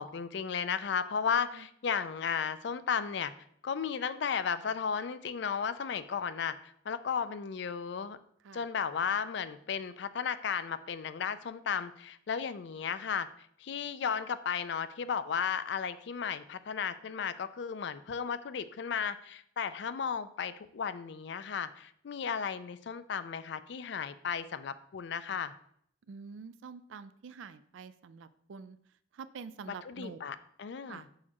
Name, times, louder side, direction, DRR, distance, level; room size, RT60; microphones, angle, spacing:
voice 1, 0.0-3.3 3.6-8.2 8.5-25.5 29.8-31.1, left 6 dB, 60° left, 13 dB, 0.4 m, -34 dB
voice 2, 26.1-28.8 29.1-30.2 30.9-31.1, right 5 dB, 75° right, 14 dB, 0.4 m, -46 dB
6.4 x 5.8 x 2.9 m, 0.66 s
head